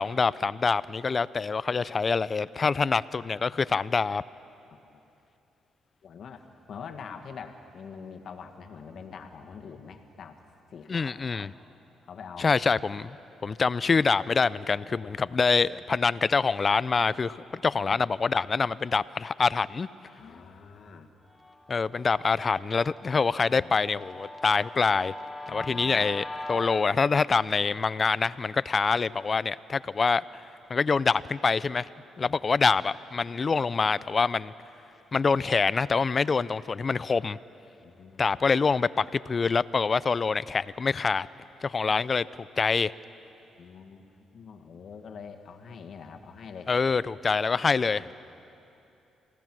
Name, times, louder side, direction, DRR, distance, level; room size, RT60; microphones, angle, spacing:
voice 1, 0.0-4.2 10.9-11.5 12.4-13.2 13.4-19.9 21.7-25.1 25.5-30.2 30.7-31.9 32.2-34.5 35.1-37.4 38.2-41.3 41.6-42.9 46.7-48.1, left 5 dB, 35° left, 19 dB, 0.4 m, -25 dB
voice 2, 6.0-10.4 10.7-11.5 12.0-12.6 14.9-15.4 17.7-18.0 20.2-21.1 23.4-23.7 25.5-26.1 32.2-32.3 37.8-38.2 43.6-44.0 44.3-46.7 47.6-48.1, left 6 dB, 60° left, 6 dB, 1.6 m, -45 dB
Guitar, 21.4-26.9, left 2 dB, 15° left, 1.5 m, -41 dB
28.0 x 17.0 x 6.1 m, 2.8 s
cardioid pair, 90°, 0 cm